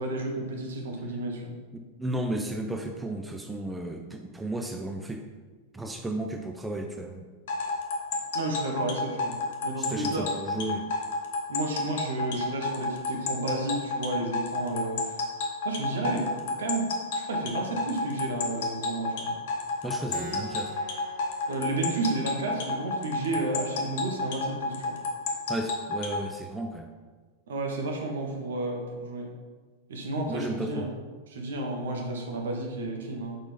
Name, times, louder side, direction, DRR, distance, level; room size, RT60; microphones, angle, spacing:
voice 1, 0.0-1.5 8.3-9.4 9.6-10.3 11.5-15.2 15.6-16.3 16.6-16.9 17.1-19.4 21.5-25.0 27.5-29.3 29.9-30.9 31.3-33.4, right 2 dB, 60° right, 1 dB, 1.0 m, -32 dB
voice 2, 1.7-5.2 5.7-7.3 9.8-10.9 19.8-20.8 25.5-26.9 30.3-30.9, right 1 dB, 10° right, 4 dB, 0.4 m, -34 dB
sound 1, 7.5-26.2, left 3 dB, 55° left, 0.9 m, -30 dB
Keyboard (musical), 20.1-25.2, right 3 dB, 35° right, 1.0 m, -47 dB
5.0 x 4.4 x 4.3 m, 1.4 s
figure-of-eight pair, 90°, 0 cm